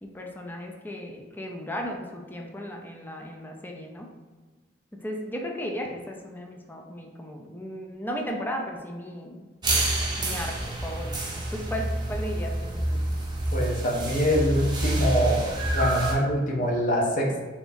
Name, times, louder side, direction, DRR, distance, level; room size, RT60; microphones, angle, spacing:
voice 1, 0.0-4.1 4.9-9.5 10.2-13.0, equal, 10° left, 2 dB, 0.4 m, -35 dB
sound 1, 9.6-16.1, right 1 dB, 25° right, 0.6 m, -28 dB
voice 2, 13.5-15.5 15.7-17.4, equal, 50° left, -1 dB, 0.7 m, -24 dB
3.5 x 3.3 x 2.6 m, 1.4 s
head